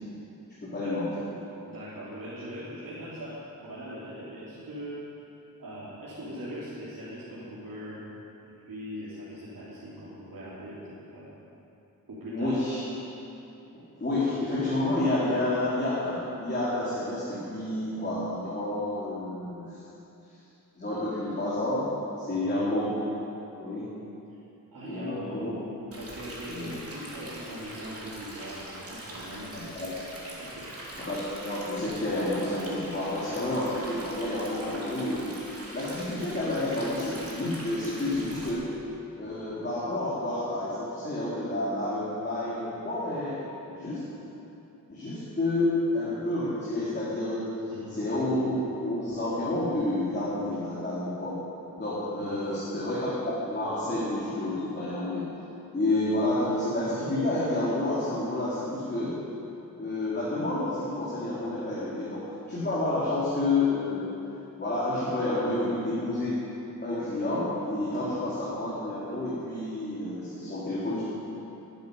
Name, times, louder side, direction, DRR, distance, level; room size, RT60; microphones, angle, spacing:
voice 1, 0.6-1.1 12.3-12.8 14.0-19.7 20.8-21.9 22.2-22.9 23.5-23.8 24.8-25.5 26.5-26.7 29.7-29.9 31.0-35.3 35.7-38.7 39.2-43.4 43.7-44.0 44.9-47.5 47.9-51.4 51.8-53.1 53.4-55.2 55.7-59.1 59.7-64.1 64.6-66.4 66.8-71.0, left 2 dB, 30° left, -9 dB, 3.3 m, -29 dB
voice 2, 1.7-5.1 5.6-8.0 8.7-11.3 12.1-12.6 22.3-22.6 24.3-24.4 24.7-25.6 26.0-29.9 30.4-30.7 47.7-48.0 52.2-52.4, equal, 70° right, -11 dB, 3.5 m, -41 dB
Stream, 25.9-38.5, right 1 dB, 40° right, 3.3 m, -42 dB
20.5 x 11.0 x 5.4 m, 2.9 s
wide cardioid pair, 150°, 35 cm